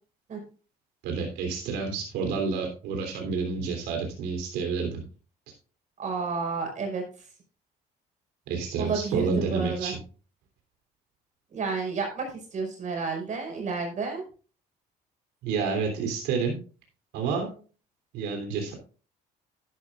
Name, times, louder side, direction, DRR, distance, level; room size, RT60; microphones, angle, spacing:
voice 1, 1.0-5.0 8.5-10.0 15.4-16.6 17.1-17.5 18.1-18.7, right 5 dB, 85° right, 3 dB, 3.3 m, -29 dB
voice 2, 6.0-7.0 8.8-9.9 11.5-14.2, right 4 dB, 45° right, 3 dB, 5.1 m, -31 dB
11.5 x 11.0 x 2.4 m, 0.37 s
cardioid pair, 110°, 17 cm